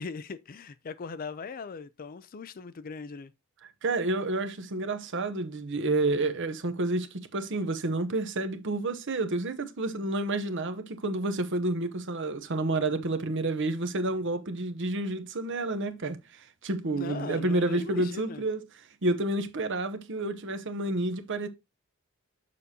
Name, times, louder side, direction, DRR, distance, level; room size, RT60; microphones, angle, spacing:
voice 1, 0.0-3.3 16.9-18.4, left 4 dB, 40° left, 0.4 m, -39 dB
voice 2, 3.8-18.6 19.0-21.5, right 2 dB, 55° right, 0.9 m, -29 dB
6.8 x 6.7 x 2.8 m
head